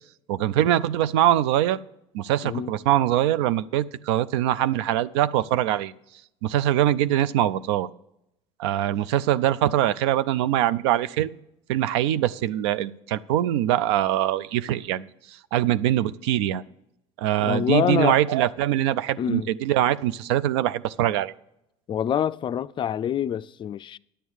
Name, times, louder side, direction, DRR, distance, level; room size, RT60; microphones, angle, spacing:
voice 1, 0.3-1.8 2.1-5.9 6.4-7.9 8.6-11.3 11.7-16.6 17.2-21.3, right 12 dB, 85° right, 0.4 m, -23 dB
voice 2, 17.4-18.2 19.2-19.5 21.9-24.0, left 9 dB, 35° left, 0.3 m, -25 dB
10.0 x 7.1 x 6.4 m
supercardioid pair, 85°, 14 cm